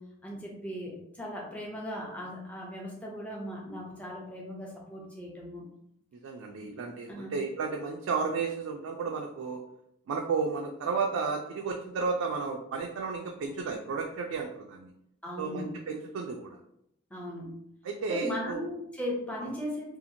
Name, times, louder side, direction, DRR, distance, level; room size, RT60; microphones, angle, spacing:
voice 1, 0.0-5.6 6.6-6.7 7.1-7.4 15.2-15.7 17.1-17.6 18.1-20.0, equal, 5° left, -3 dB, 0.6 m, -38 dB
voice 2, 6.1-9.6 10.1-14.9 15.4-16.6 17.8-18.6 19.4-19.5, right 4 dB, 75° right, 1 dB, 0.3 m, -33 dB
2.8 x 2.4 x 2.7 m, 0.78 s
head